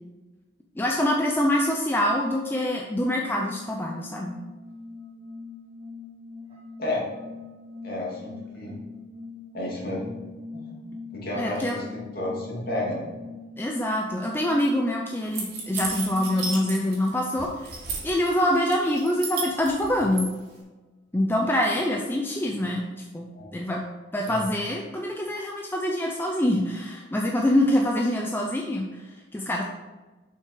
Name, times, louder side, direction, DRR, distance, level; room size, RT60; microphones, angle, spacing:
voice 1, 0.8-4.4 11.4-11.8 13.6-20.3 21.1-23.8 24.1-29.6, left 1 dB, 10° left, 0 dB, 0.5 m, -25 dB
sound 1, 3.2-17.6, left 3 dB, 30° right, 1.1 m, -42 dB
voice 2, 7.8-8.8 9.5-10.1 10.5-13.1 23.3-23.5 24.3-24.4, left 1 dB, 50° left, -5 dB, 2.6 m, -32 dB
sound 2, 15.3-17.1 17.4-18.3 18.7-20.3, right 4 dB, 55° right, 2.2 m, -33 dB
7.0 x 5.7 x 4.7 m, 1.2 s
head